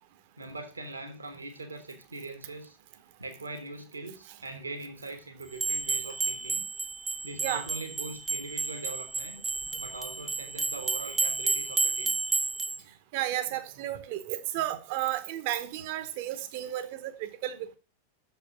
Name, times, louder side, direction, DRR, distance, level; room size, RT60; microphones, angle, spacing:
voice 1, 0.4-2.8 3.2-6.7 7.2-9.4 9.8-12.1, right 2 dB, 80° right, 1.3 m, -41 dB
sound 1, 5.6-12.8, right 3 dB, 10° right, 0.4 m, -31 dB
voice 2, 13.1-17.8, right 13 dB, 50° right, 0.9 m, -33 dB
6.6 x 5.6 x 7.1 m
figure-of-eight pair, 90°, 0 cm